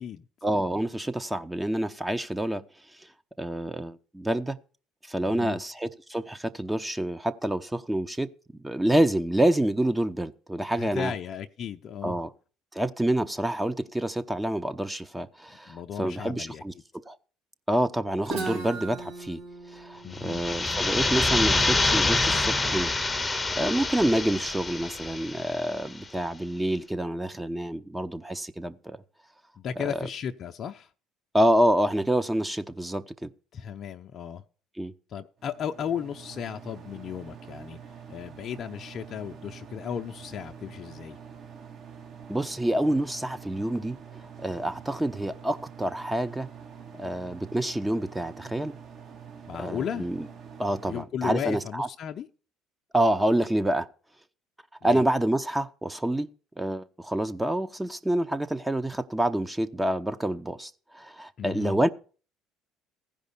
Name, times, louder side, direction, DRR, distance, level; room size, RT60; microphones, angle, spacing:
voice 1, 0.4-2.6 3.4-4.6 5.1-8.3 8.6-11.1 12.0-12.3 12.7-17.2 17.7-19.4 19.7-22.9 23.6-29.0 31.3-33.3 34.8-34.9 42.3-44.0 44.4-46.5 46.9-48.7 49.6-50.3 50.6-51.9 52.9-53.9 54.8-56.3 56.6-61.9, right 1 dB, 10° right, 0.8 m, -27 dB
voice 2, 5.2-5.6 10.8-12.2 15.7-16.6 20.0-20.4 29.6-30.9 33.5-34.4 35.1-37.8 38.1-41.2 49.5-50.1 50.8-52.3 54.8-55.0 61.4-61.8, left 8 dB, 50° left, 0.6 m, -35 dB
Guitar, 18.2-22.0, right 3 dB, 75° right, 3.4 m, -38 dB
sound 1, 20.1-25.8, left 3 dB, 20° left, 0.8 m, -26 dB
sound 2, 35.4-51.0, right 7 dB, 55° right, 2.0 m, -46 dB
15.0 x 5.2 x 6.9 m
hypercardioid pair, 70°, 0 cm